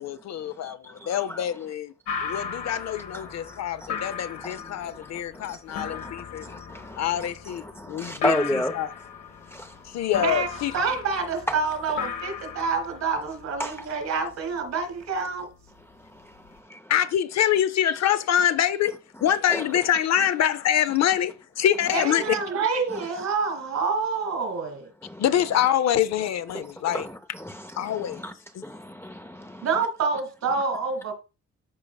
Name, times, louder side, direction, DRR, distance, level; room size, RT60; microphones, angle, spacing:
voice 1, 0.0-1.9 2.2-6.5 7.0-8.9 9.8-10.7 16.9-22.4 25.2-27.1 27.8-28.2 28.5-28.6, left 10 dB, 60° left, 0.6 m, -25 dB
voice 2, 0.6-1.4 2.3-2.4 3.1-4.0 4.4-5.1 5.3-6.1 6.4-8.7 9.5-9.8 11.5-11.6 13.6-13.9 16.0-16.9 19.5-19.6 25.0-25.2 26.5-28.3 28.6-29.7, equal, 10° left, 0.6 m, -33 dB
sound 1, 2.1-16.6, left 7 dB, 85° left, 1.5 m, -38 dB
voice 3, 10.2-15.5 21.9-24.9 29.6-31.1, right 4 dB, 65° right, 2.1 m, -27 dB
12.5 x 4.6 x 2.3 m
cardioid pair, 90°, 30 cm